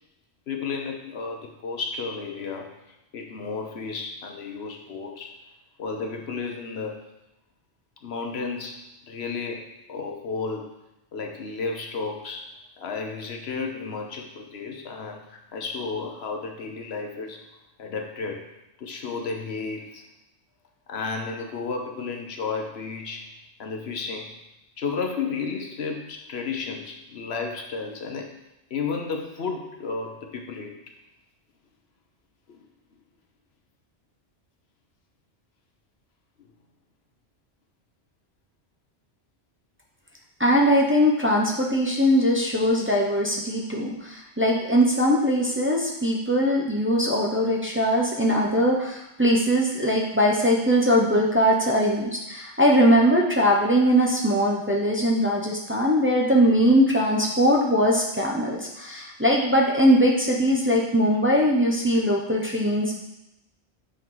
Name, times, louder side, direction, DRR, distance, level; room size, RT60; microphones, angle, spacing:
voice 1, 0.5-2.8 3.1-5.4 5.8-7.0 8.0-10.7 11.1-12.5 12.8-17.5 17.8-18.5 18.8-20.0 20.9-23.3 23.6-24.4 24.8-28.4 28.7-30.8 32.5-32.6 42.4-42.5, left 4 dB, 70° left, 3 dB, 1.1 m, -33 dB
voice 2, 40.4-62.9, equal, 10° right, -3 dB, 0.9 m, -21 dB
8.6 x 4.6 x 3.9 m, 0.88 s
omnidirectional pair, 1.1 m